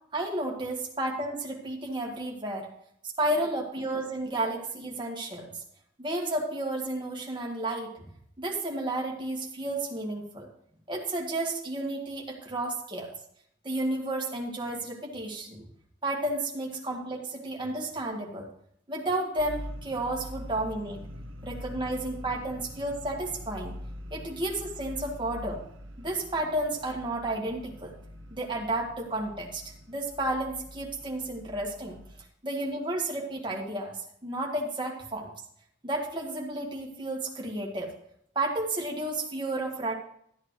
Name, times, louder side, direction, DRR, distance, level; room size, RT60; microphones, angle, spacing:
voice 1, 0.1-2.7 3.2-5.6 6.0-8.0 8.4-10.5 10.9-13.1 13.6-15.6 16.0-18.5 18.9-21.0 21.4-23.7 24.1-25.6 26.0-27.9 28.3-31.9 32.4-33.9 34.2-35.3 35.8-37.9 38.3-39.9, right 1 dB, 25° right, -1 dB, 1.7 m, -32 dB
sound 1, 19.4-32.2, equal, 90° right, 0.8 m, -44 dB
12.5 x 8.9 x 3.1 m, 0.68 s
head